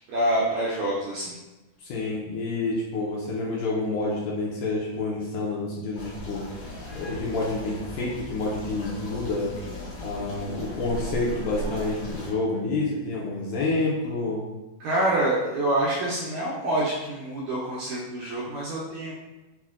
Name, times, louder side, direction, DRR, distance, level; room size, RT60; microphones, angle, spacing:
voice 1, 0.1-1.4 14.8-19.1, right 1 dB, 85° right, -6 dB, 1.7 m, -26 dB
voice 2, 1.8-6.5 6.9-9.5 10.0-14.5, left 2 dB, 80° left, -4 dB, 1.9 m, -28 dB
sound 1, 5.9-12.3, equal, 60° left, 1.8 m, -37 dB
5.8 x 2.1 x 2.4 m, 1.1 s
omnidirectional pair, 3.9 m